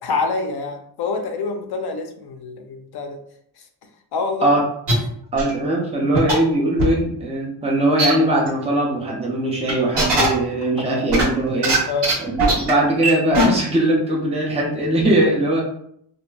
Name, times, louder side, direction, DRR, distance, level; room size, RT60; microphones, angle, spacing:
voice 1, 0.0-3.2 3.6-3.7 4.1-4.5 10.8-10.9 11.9-12.1, left 4 dB, 60° left, 5 dB, 0.5 m, -26 dB
sound 1, 4.9-5.0 5.4-5.5 6.1-6.3 6.8-6.9 8.0-8.1 8.5-8.6 9.7-10.3 11.1-11.8 12.0-12.1 12.4-12.7 13.0-13.1 13.3-13.5, right 2 dB, 60° right, 1.1 m, -19 dB
voice 2, 5.3-11.8 12.2-15.6, right 1 dB, 15° right, -3 dB, 0.5 m, -20 dB
2.8 x 2.4 x 2.2 m, 0.68 s
wide cardioid pair, 140°, 46 cm